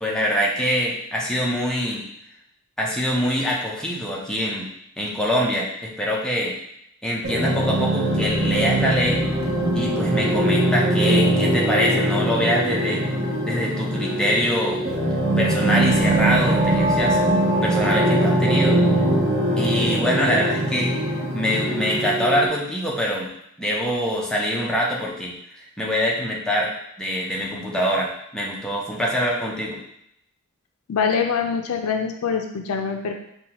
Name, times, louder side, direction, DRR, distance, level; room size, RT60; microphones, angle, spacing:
voice 1, 0.0-2.0 2.8-4.7 5.0-6.5 7.0-9.3 9.7-13.0 13.4-14.8 15.4-17.2 17.6-18.8 19.6-20.9 21.3-23.3 23.6-26.7 27.0-29.8, equal, 5° left, -4 dB, 0.6 m, -24 dB
sound 1, 7.2-22.5, right 1 dB, 50° right, 0.7 m, -21 dB
voice 2, 30.9-33.1, left 6 dB, 75° left, 4 dB, 0.4 m, -24 dB
5.3 x 2.3 x 2.9 m, 0.75 s
head